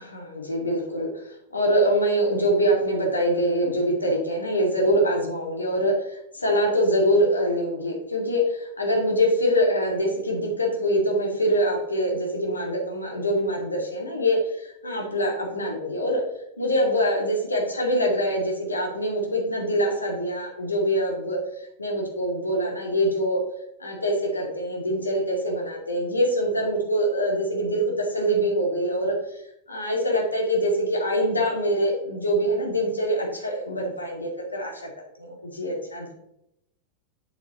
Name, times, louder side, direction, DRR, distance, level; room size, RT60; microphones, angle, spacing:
voice 1, 0.0-16.2 16.6-23.4 23.8-29.1 29.7-34.9 35.2-36.1, equal, 80° left, 0 dB, 2.3 m, -24 dB
8.2 x 7.7 x 3.0 m, 0.79 s
figure-of-eight pair, 90°, 0 cm